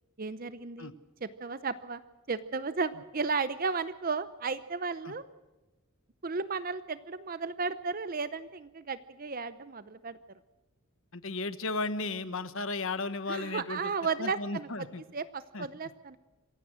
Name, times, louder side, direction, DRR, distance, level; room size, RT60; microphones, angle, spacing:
voice 1, 0.2-0.9 1.2-2.0 2.3-5.2 6.2-10.2 13.3-16.2, right 4 dB, 40° right, 14 dB, 0.7 m, -34 dB
voice 2, 11.1-13.9 14.2-15.0 15.5-15.7, left 3 dB, 65° left, 13 dB, 1.3 m, -34 dB
26.5 x 16.0 x 6.2 m, 1.2 s
head